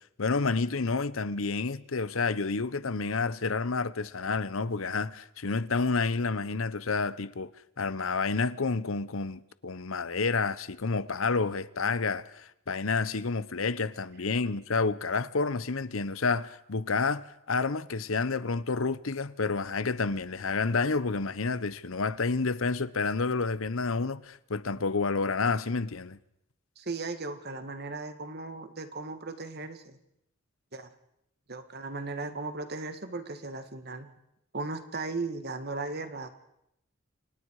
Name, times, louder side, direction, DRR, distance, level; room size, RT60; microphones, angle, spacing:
voice 1, 0.2-7.5 7.8-26.2, left 4 dB, 80° left, 0.9 m, -29 dB
voice 2, 26.8-30.0 30.7-30.9 31.5-34.1 34.5-36.3, right 3 dB, 50° right, 2.0 m, -37 dB
29.5 x 25.5 x 4.9 m
head